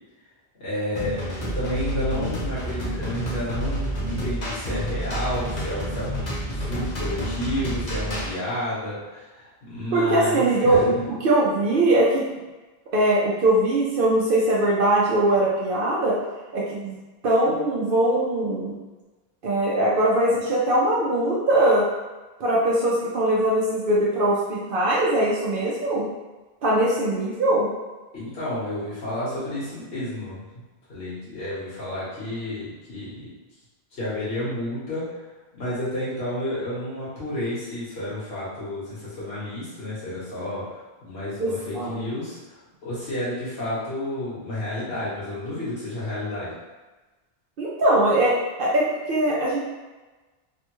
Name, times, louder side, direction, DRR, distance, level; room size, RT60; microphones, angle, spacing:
voice 1, 0.6-10.8 28.1-30.4 30.9-33.3 33.9-35.2 35.5-46.5, left 1 dB, 85° left, -10 dB, 1.5 m, -31 dB
sound 1, 1.0-8.3, right 1 dB, 45° left, 0.8 m, -29 dB
voice 2, 9.9-10.9 11.2-12.2 12.9-16.2 16.5-16.9 17.2-18.7 19.4-21.9 22.4-26.1 26.6-27.7 41.4-42.1 47.6-48.3 48.6-49.6, right 1 dB, 65° right, -5 dB, 0.8 m, -21 dB
3.4 x 2.2 x 3.0 m, 1.2 s
omnidirectional pair, 1.1 m